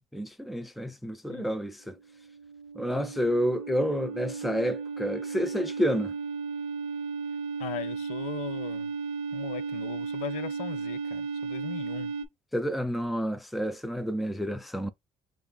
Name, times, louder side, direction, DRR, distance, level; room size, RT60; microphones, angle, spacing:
voice 1, 0.0-2.0 2.8-6.1 12.5-14.9, equal, ahead, 0.3 m, -29 dB
sound 1, 2.0-12.3, right 5 dB, 75° right, 0.6 m, -35 dB
voice 2, 7.6-8.9 9.3-12.1, left 12 dB, 85° left, 0.5 m, -39 dB
5.1 x 2.4 x 2.3 m
cardioid pair, 140°, 11 cm